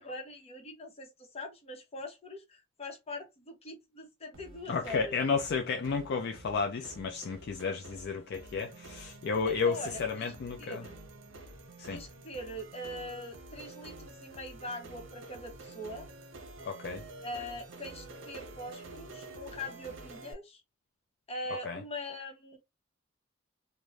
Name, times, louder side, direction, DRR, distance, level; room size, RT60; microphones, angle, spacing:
voice 1, 0.0-5.2 9.4-10.3 10.6-11.0 11.9-16.1 17.2-20.6 21.3-22.6, left 1 dB, 30° left, 0.9 m, -42 dB
sound 1, 4.3-20.3, right 2 dB, 70° right, 0.8 m, -49 dB
voice 2, 4.7-10.9 11.8-12.0 16.6-17.0 21.6-21.8, left 5 dB, 55° left, 0.4 m, -32 dB
3.1 x 2.2 x 2.4 m
head